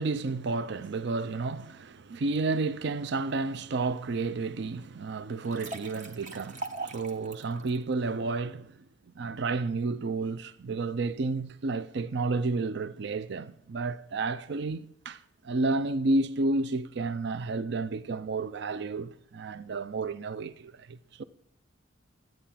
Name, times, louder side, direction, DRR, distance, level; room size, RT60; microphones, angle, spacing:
voice 1, 0.0-8.7 9.2-21.2, right 3 dB, 60° right, 0.5 m, -31 dB
sound 1, 5.3-7.8, right 2 dB, 40° right, 1.1 m, -40 dB
12.5 x 9.2 x 5.7 m
head